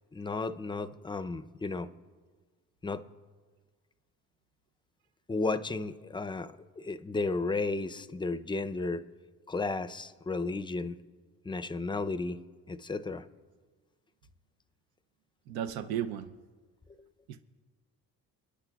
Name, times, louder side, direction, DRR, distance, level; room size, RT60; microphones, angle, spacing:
voice 1, 0.1-1.9 2.8-3.0 5.3-9.0 9.5-11.0 11.4-12.4 12.7-13.2, left 3 dB, 15° left, 12 dB, 0.5 m, -33 dB
voice 2, 15.5-16.3 17.3-17.4, right 10 dB, 90° right, 9 dB, 0.6 m, -34 dB
28.0 x 10.0 x 2.3 m, 1.4 s
cardioid pair, 80°, 36 cm